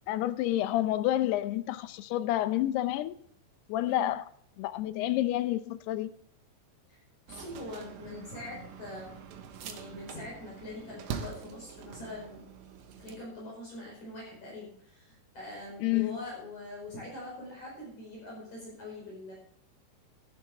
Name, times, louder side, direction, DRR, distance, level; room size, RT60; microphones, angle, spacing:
voice 1, 0.1-3.1 3.7-4.2 4.6-6.1 15.8-16.2, left 14 dB, 80° left, 2.5 m, -29 dB
voice 2, 3.8-4.1 6.9-7.0 7.3-9.1 9.6-12.4 13.0-19.3, left 2 dB, 40° left, 6.0 m, -43 dB
sound 1, 7.3-13.2, right 7 dB, 90° right, 3.6 m, -44 dB
sound 2, 8.4-8.9 9.4-9.8 10.6-10.7 11.1-11.9 12.5-13.2, right 9 dB, 65° right, 2.4 m, -51 dB
14.0 x 11.5 x 3.5 m
omnidirectional pair, 5.0 m